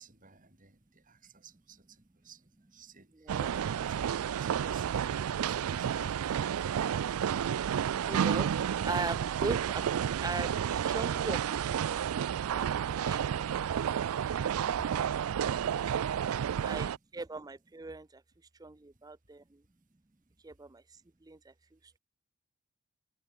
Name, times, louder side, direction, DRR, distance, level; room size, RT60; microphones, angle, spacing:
voice 1, 0.0-6.2, right 5 dB, 40° right, 6.8 m, -56 dB
sound 1, 3.3-17.0, right 8 dB, 90° right, 0.4 m, -31 dB
sound 2, 4.1-9.2, left 2 dB, 90° left, 6.4 m, -59 dB
voice 2, 8.1-8.5 8.8-12.1 12.5-12.7 13.0-14.0 16.6-18.2 18.6-19.6 20.4-20.8 21.2-21.5, right 3 dB, 20° right, 0.5 m, -40 dB
head